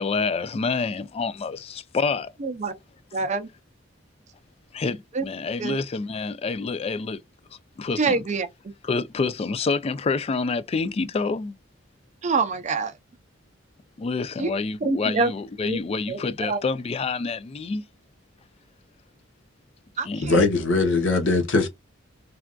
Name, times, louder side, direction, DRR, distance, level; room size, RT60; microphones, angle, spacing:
voice 1, 0.0-2.3 4.7-7.2 7.8-8.2 8.8-11.5 14.0-17.8 20.1-20.5, left 4 dB, 30° left, 0.3 m, -27 dB
voice 2, 2.4-2.7 3.1-3.5 5.1-5.2 5.6-5.8 8.0-8.5 12.2-12.9 14.4-14.5 14.8-15.3 15.6-15.8 16.1-16.6 20.0-20.4, right 4 dB, 35° right, 0.5 m, -26 dB
voice 3, 20.2-21.7, left 3 dB, 65° left, 0.8 m, -20 dB
3.3 x 2.5 x 2.2 m
head